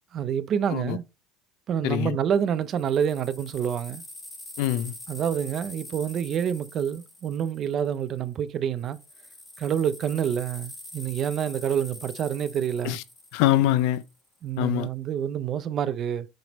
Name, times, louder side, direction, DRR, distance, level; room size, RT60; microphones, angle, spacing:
voice 1, 0.1-1.0 1.7-4.0 5.1-9.0 9.6-13.0 14.4-16.3, right 8 dB, 30° right, 0.5 m, -27 dB
voice 2, 1.8-2.2 4.6-4.9 12.8-13.0 13.3-14.0 14.6-14.9, left 13 dB, 65° left, 0.5 m, -24 dB
sound 1, 2.3-8.3 8.8-14.2, left 1 dB, 10° left, 1.5 m, -44 dB
7.8 x 3.4 x 4.0 m
cardioid pair, 170°, 0 cm